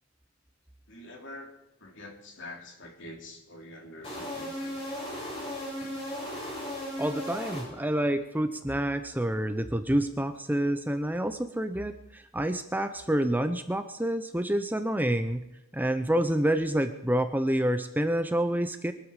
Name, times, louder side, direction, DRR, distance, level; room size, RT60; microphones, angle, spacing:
voice 1, 0.9-4.9, left 1 dB, 60° left, 2 dB, 3.4 m, -46 dB
sound 1, 4.0-8.1, equal, 30° left, 7.0 m, -36 dB
voice 2, 7.0-15.4 15.7-18.9, right 1 dB, 10° right, 9 dB, 0.7 m, -28 dB
23.0 x 12.5 x 5.0 m, 0.90 s
head